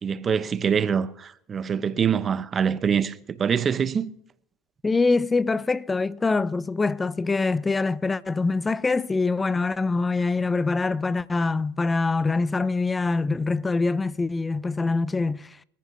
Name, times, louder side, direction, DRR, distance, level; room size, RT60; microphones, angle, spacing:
voice 1, 0.0-4.1, right 7 dB, 30° right, 0.8 m, -24 dB
voice 2, 4.8-15.6, left 3 dB, 15° left, 0.5 m, -24 dB
25.5 x 14.5 x 2.7 m
hypercardioid pair, 90°, 0 cm